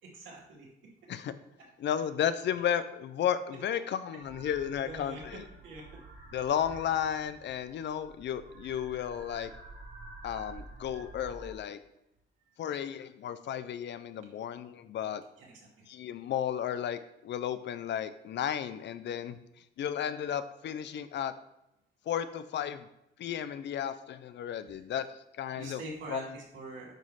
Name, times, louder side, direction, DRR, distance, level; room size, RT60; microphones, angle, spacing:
voice 1, 0.0-0.7 4.8-5.2 5.6-5.8 15.4-15.5 25.5-26.9, right 2 dB, 75° right, -3 dB, 2.6 m, -43 dB
voice 2, 1.8-5.5 6.3-9.5 10.2-11.8 12.6-15.2 15.9-19.4 19.8-21.3 22.1-22.9 23.2-25.1 25.3-25.8 26.1-26.4, left 9 dB, 65° left, 12 dB, 0.6 m, -33 dB
sound 1, 4.2-11.5, right 2 dB, 60° right, 2.2 m, -49 dB
9.1 x 3.1 x 5.6 m, 0.85 s
cardioid pair, 90°, 20 cm